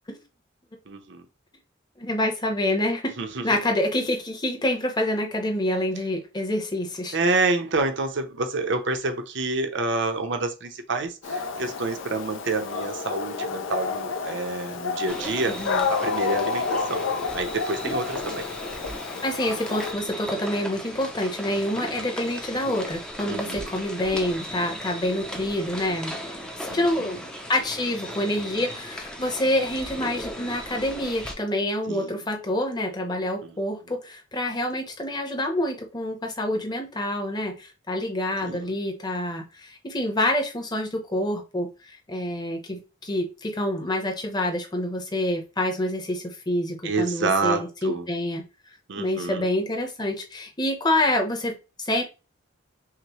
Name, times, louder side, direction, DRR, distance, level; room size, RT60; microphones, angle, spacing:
voice 1, 0.9-1.2 3.2-3.4 7.1-15.6 15.9-17.0 17.3-18.5 23.3-23.7 26.7-27.2 31.9-32.2 33.4-33.6 38.4-38.7 46.8-48.1 48.9-49.5, right 3 dB, 60° right, 0.7 m, -28 dB
voice 2, 2.0-3.1 3.4-7.2 15.6-15.9 19.2-27.2 27.5-48.4 49.0-52.0, left 1 dB, 20° left, 0.9 m, -27 dB
Dog, 11.2-19.9, left 4 dB, 70° left, 0.5 m, -30 dB
sound 1, 15.1-31.3, equal, 5° left, 0.5 m, -37 dB
5.8 x 2.1 x 3.1 m
head